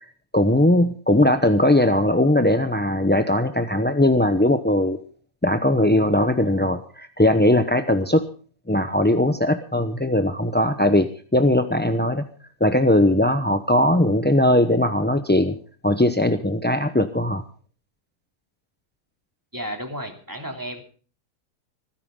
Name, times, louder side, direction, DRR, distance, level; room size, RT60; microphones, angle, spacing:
voice 1, 0.3-5.0 5.4-8.2 8.7-12.2 12.6-15.6 15.8-17.4, left 1 dB, 15° left, 9 dB, 0.3 m, -19 dB
voice 2, 19.5-20.8, equal, 10° right, 3 dB, 2.8 m, -33 dB
25.5 x 10.5 x 3.7 m, 0.40 s
omnidirectional pair, 1.8 m